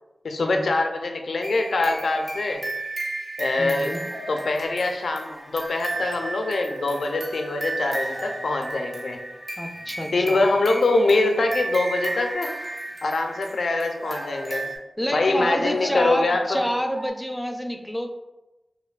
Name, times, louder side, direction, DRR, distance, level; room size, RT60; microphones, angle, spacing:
voice 1, 0.2-2.6 3.4-3.9 4.2-9.2 10.1-12.5 13.0-14.6 15.1-16.6, left 2 dB, 80° left, 4 dB, 0.4 m, -24 dB
sound 1, 1.4-14.8, right 2 dB, 50° right, 0.9 m, -34 dB
sound 2, 2.6-2.7 3.7-5.6 5.9-6.2 6.6-7.4 7.8-8.7 9.0-9.4 9.6-10.3 10.5-10.6 10.9-11.6 11.9-13.0 13.2-13.4 13.7-14.8 15.5-16.2 16.5-17.1, right 1 dB, 75° right, 0.7 m, -42 dB
voice 2, 3.6-4.0 9.6-10.4 15.0-18.1, equal, 10° left, 4 dB, 0.4 m, -28 dB
5.1 x 2.1 x 2.4 m, 1.0 s
cardioid pair, 45°, 0 cm